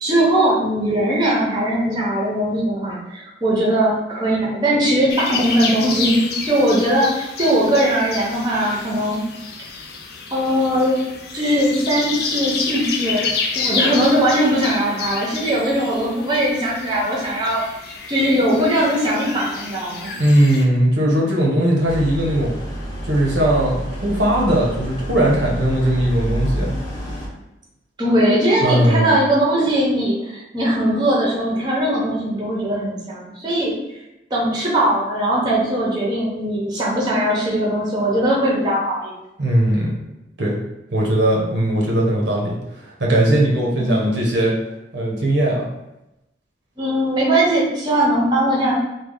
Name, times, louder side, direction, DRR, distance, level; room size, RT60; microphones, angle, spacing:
voice 1, 0.0-9.2 10.3-11.0 11.3-13.2 13.5-20.1 28.0-33.7 34.3-39.1 43.8-44.2 46.8-48.7, right 1 dB, 25° right, -4 dB, 0.7 m, -20 dB
sound 1, 5.1-20.6, left 4 dB, 60° left, 0.4 m, -29 dB
voice 2, 20.2-22.5 23.0-26.7 28.6-29.1 39.4-40.0 40.4-40.6 40.9-42.6 42.8-44.5 44.9-45.7, right 1 dB, 80° right, -2 dB, 0.8 m, -18 dB
sound 2, 21.9-27.3, equal, 25° left, 0.8 m, -28 dB
3.2 x 2.2 x 3.7 m, 0.92 s
head